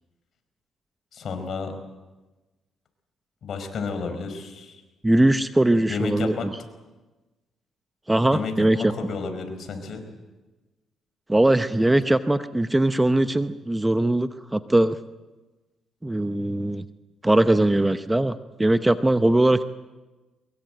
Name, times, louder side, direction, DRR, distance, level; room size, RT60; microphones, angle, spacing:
voice 1, 1.1-1.7 3.4-4.8 5.9-6.5 8.3-10.0, left 4 dB, 60° left, 7 dB, 5.0 m, -31 dB
voice 2, 5.0-6.5 8.1-8.9 11.3-15.0 16.0-16.8 17.2-19.6, right 1 dB, 10° right, 11 dB, 0.9 m, -21 dB
23.0 x 22.5 x 8.0 m, 1.2 s
cardioid pair, 90°, 0 cm